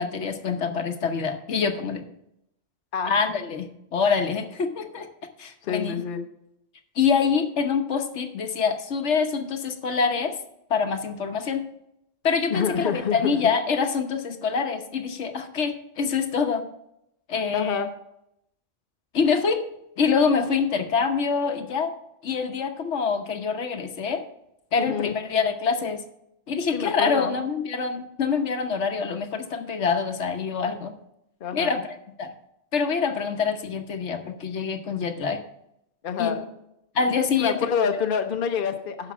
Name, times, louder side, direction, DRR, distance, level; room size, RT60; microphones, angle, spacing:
voice 1, 0.0-2.1 3.1-5.1 5.4-5.9 7.0-10.3 10.7-11.6 12.2-16.7 17.3-17.8 19.1-19.6 20.0-21.9 22.2-24.2 24.7-26.0 26.5-30.9 31.5-32.3 32.7-35.4 36.2-36.4 36.9-37.6, left 5 dB, 70° left, 7 dB, 1.2 m, -25 dB
voice 2, 5.6-6.3 12.5-13.4 17.5-17.9 24.8-25.2 26.7-27.3 31.4-31.8 36.0-36.4 37.4-39.1, left 7 dB, 50° left, 6 dB, 0.9 m, -27 dB
11.5 x 5.1 x 6.0 m, 0.82 s
omnidirectional pair, 1.2 m